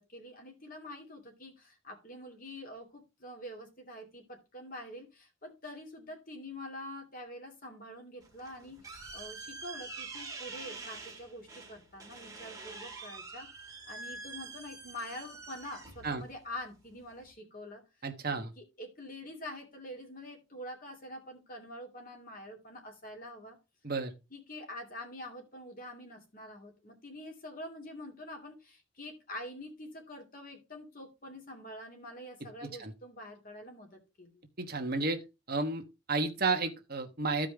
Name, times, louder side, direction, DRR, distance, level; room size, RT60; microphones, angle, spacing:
voice 1, 0.0-13.5 13.9-17.8 18.3-23.6 24.3-34.4, left 1 dB, 40° left, 2.5 m, -46 dB
sound 1, 8.2-17.3, right 4 dB, 15° right, 1.9 m, -46 dB
voice 2, 18.0-18.5 23.8-24.1 32.8-32.9 34.6-35.2 35.5-35.8 36.1-37.5, right 3 dB, 45° right, 1.2 m, -31 dB
14.5 x 5.1 x 3.4 m
head